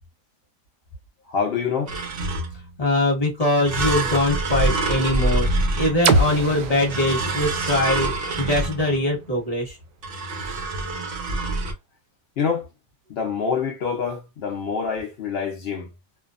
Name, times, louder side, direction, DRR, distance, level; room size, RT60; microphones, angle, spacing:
voice 1, 1.3-1.9 12.4-12.7 13.1-15.9, left 6 dB, 80° left, 0.5 m, -26 dB
sound 1, 1.9-2.7 3.7-6.3 6.9-9.1 10.0-11.7, right 2 dB, 65° right, 0.5 m, -26 dB
voice 2, 2.8-8.1 8.4-9.8, left 1 dB, 25° left, 1.0 m, -22 dB
sound 2, 6.0-9.9, right 3 dB, 90° right, 1.2 m, -26 dB
2.7 x 2.2 x 2.4 m
omnidirectional pair, 1.8 m